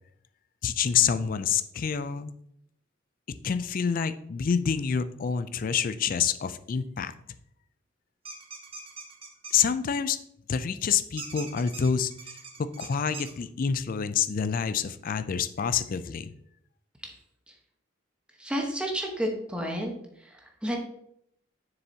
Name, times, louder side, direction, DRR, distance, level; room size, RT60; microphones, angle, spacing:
voice 1, 0.6-2.3 3.4-7.1 9.5-10.2 10.5-12.1 12.6-16.3, left 7 dB, 45° left, 12 dB, 0.4 m, -27 dB
sound 1, 8.2-9.7 11.2-13.3, right 4 dB, 30° right, 1.0 m, -42 dB
voice 2, 18.4-19.9 20.2-20.4 20.6-20.8, equal, 5° right, 0 dB, 1.1 m, -30 dB
7.0 x 6.8 x 2.8 m, 0.73 s
head